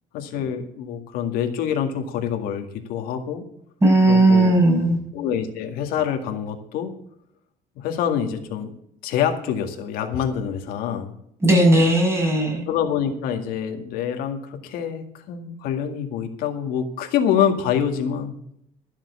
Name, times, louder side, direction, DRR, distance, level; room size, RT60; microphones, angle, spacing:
voice 1, 0.1-3.4 4.1-4.5 5.1-6.9 7.8-8.7 9.0-11.1 12.7-18.4, left 8 dB, 85° left, 4 dB, 2.0 m, -26 dB
voice 2, 3.8-5.0 11.4-12.7, right 1 dB, 20° right, 0 dB, 6.1 m, -16 dB
14.0 x 7.3 x 6.9 m, 0.71 s
cardioid pair, 135°, 15 cm